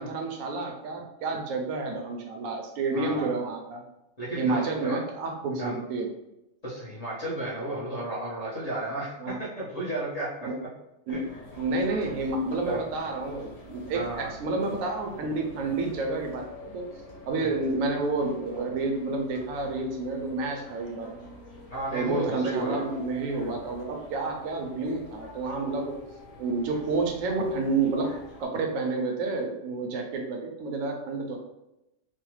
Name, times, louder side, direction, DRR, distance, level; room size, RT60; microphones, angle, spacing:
voice 1, 0.0-3.8 4.3-6.1 9.2-9.4 10.4-10.5 11.1-11.2 11.6-16.9 17.3-21.3 21.9-26.0 26.4-28.1 28.4-31.4, right 3 dB, 85° right, 2 dB, 1.0 m, -29 dB
voice 2, 2.9-3.3 4.2-5.0 5.6-5.8 6.6-9.1 9.4-10.3 10.6-10.7 11.1-11.2 12.7-12.8 13.9-14.3 17.4-17.5 21.7-22.8, right 1 dB, 35° left, -7 dB, 0.8 m, -33 dB
sound 1, 11.1-28.5, left 1 dB, 75° left, 1.2 m, -47 dB
3.1 x 2.0 x 3.1 m, 0.89 s
omnidirectional pair, 1.4 m